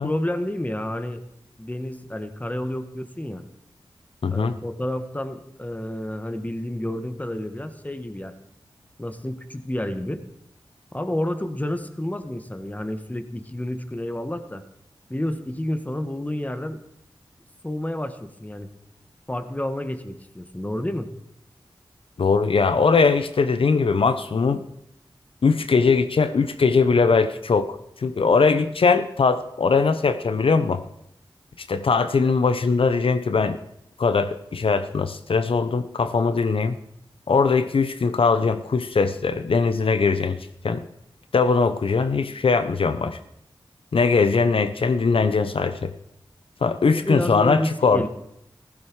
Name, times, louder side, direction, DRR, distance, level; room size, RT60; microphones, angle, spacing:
voice 1, 0.0-1.2 1.6-3.4 4.3-8.3 9.0-10.2 10.9-14.6 15.1-16.8 17.6-18.7 19.3-21.1 47.0-48.1, left 1 dB, 15° left, 9 dB, 1.5 m, -30 dB
voice 2, 4.2-4.5 22.2-24.6 25.4-30.8 31.7-33.6 34.0-36.8 37.3-40.9 41.3-43.2 43.9-45.9 46.6-48.1, left 4 dB, 80° left, 11 dB, 0.7 m, -21 dB
15.0 x 14.5 x 4.7 m, 0.76 s
wide cardioid pair, 50°, 9 cm